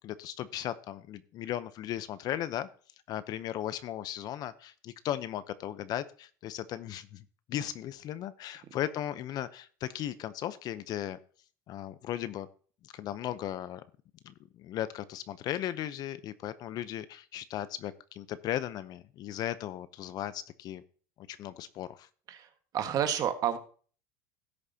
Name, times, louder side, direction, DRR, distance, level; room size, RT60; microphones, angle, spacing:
voice 1, 0.0-2.7 3.1-11.2 11.7-12.5 12.8-13.8 14.2-20.8 21.2-22.1, left 12 dB, 45° left, 14 dB, 0.7 m, -37 dB
voice 2, 22.3-23.6, right 9 dB, 40° right, 8 dB, 1.5 m, -30 dB
17.5 x 6.6 x 2.8 m, 0.42 s
supercardioid pair, 130°, 10 cm